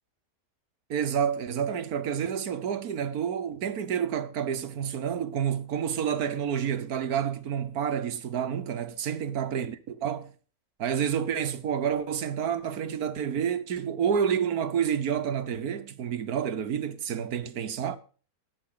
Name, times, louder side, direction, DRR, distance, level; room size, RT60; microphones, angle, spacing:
voice 1, 0.9-10.3 10.8-18.0, right 8 dB, 80° right, 1.6 m, -29 dB
20.5 x 7.6 x 3.9 m
omnidirectional pair, 1.6 m